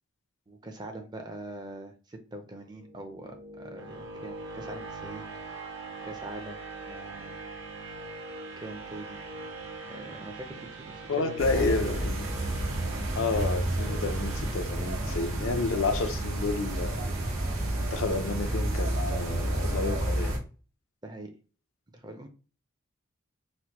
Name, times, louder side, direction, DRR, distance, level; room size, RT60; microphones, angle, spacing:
voice 1, 0.5-5.6 6.0-7.3 8.6-9.2 9.9-11.7 21.0-21.3 21.9-22.3, right 1 dB, 20° right, 0.4 m, -43 dB
sound 1, 2.7-15.6, right 3 dB, 60° right, 0.7 m, -43 dB
voice 2, 11.1-12.4 13.1-17.0 17.8-20.4, left 3 dB, 80° left, 0.5 m, -30 dB
sound 2, 11.4-20.4, right 1 dB, 90° right, 0.9 m, -30 dB
4.1 x 2.1 x 2.9 m
head